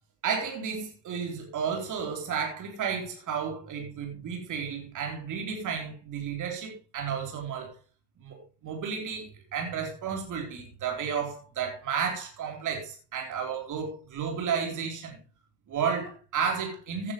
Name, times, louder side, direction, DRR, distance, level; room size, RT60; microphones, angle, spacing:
voice 1, 0.2-7.7 8.2-15.2 15.7-17.1, right 6 dB, 35° right, 3.8 m, -32 dB
16.0 x 9.7 x 3.2 m
figure-of-eight pair, 70°, 50 cm